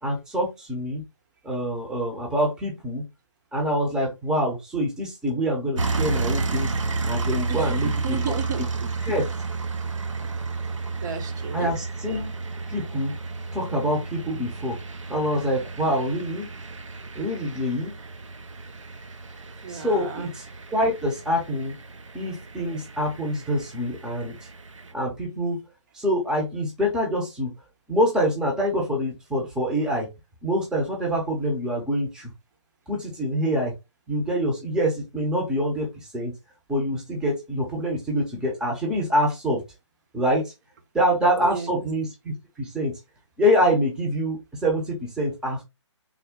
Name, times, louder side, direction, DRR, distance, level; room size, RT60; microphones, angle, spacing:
voice 1, 0.0-1.0 1.4-3.1 3.5-6.7 7.1-8.2 9.0-9.2 11.5-12.3 12.7-13.2 13.5-14.8 15.1-16.5 17.1-17.9 19.7-20.4 20.7-21.8 22.1-24.4 24.9-25.6 25.9-27.5 27.9-30.1 30.4-32.3 32.9-33.7 34.1-36.3 36.7-39.6 40.1-40.5 40.9-43.0 43.4-45.6, equal, 5° right, 0.7 m, -25 dB
sound 1, 5.8-24.9, right 3 dB, 85° right, 0.7 m, -32 dB
voice 2, 7.5-8.9 11.0-11.7 19.6-20.3 41.4-41.9, right 6 dB, 35° right, 0.8 m, -34 dB
3.6 x 2.1 x 3.5 m
hypercardioid pair, 150°, 16 cm